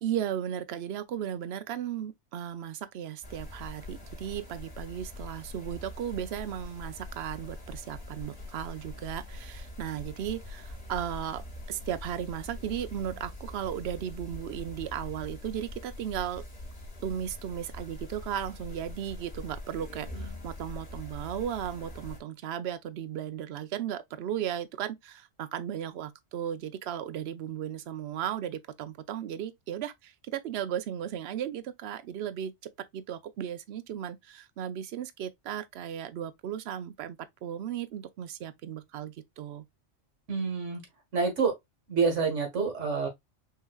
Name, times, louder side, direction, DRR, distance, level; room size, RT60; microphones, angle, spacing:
voice 1, 0.0-11.4 11.7-16.4 17.0-39.7, right 10 dB, 65° right, 0.8 m, -36 dB
sound 1, 3.2-22.2, left 1 dB, 30° left, 1.8 m, -43 dB
voice 2, 40.3-40.8 41.1-41.6 41.9-43.1, right 5 dB, 85° right, 1.9 m, -27 dB
5.6 x 2.8 x 2.3 m
omnidirectional pair, 1.2 m